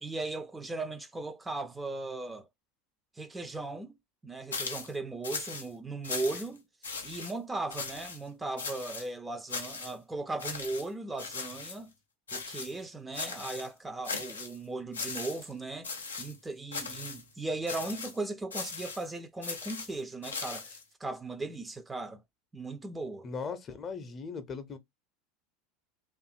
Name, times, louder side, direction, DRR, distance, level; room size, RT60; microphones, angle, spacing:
voice 1, 0.0-2.5 3.2-3.9 4.2-6.6 7.0-11.9 12.3-22.2 22.5-23.3, right 2 dB, 15° right, 0.5 m, -37 dB
sound 1, 4.5-4.9 5.2-5.7 6.0-6.6 6.8-7.3 7.7-8.2 8.6-9.1 9.5-9.9 10.4-10.9 11.2-11.8 12.3-12.8 13.1-13.7 14.0-14.6 14.9-15.5 15.8-16.4 16.7-17.2 17.7-18.2 18.5-19.1 19.4-20.8, left 4 dB, 85° left, 0.5 m, -38 dB
voice 2, 23.2-24.8, left 5 dB, 35° left, 0.6 m, -38 dB
2.6 x 2.4 x 2.4 m
figure-of-eight pair, 75°, 0 cm